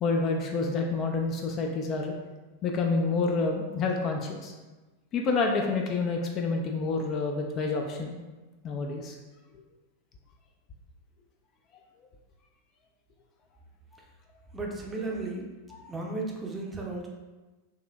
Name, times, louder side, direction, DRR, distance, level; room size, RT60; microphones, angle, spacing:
voice 1, 0.0-2.1 2.6-4.5 5.1-8.2 8.6-9.2 15.8-15.9, left 3 dB, 35° left, 2 dB, 0.3 m, -28 dB
voice 2, 14.5-15.4 15.9-17.1, right 2 dB, 15° right, -1 dB, 0.6 m, -34 dB
4.0 x 2.5 x 2.3 m, 1.2 s
figure-of-eight pair, 90°, 0 cm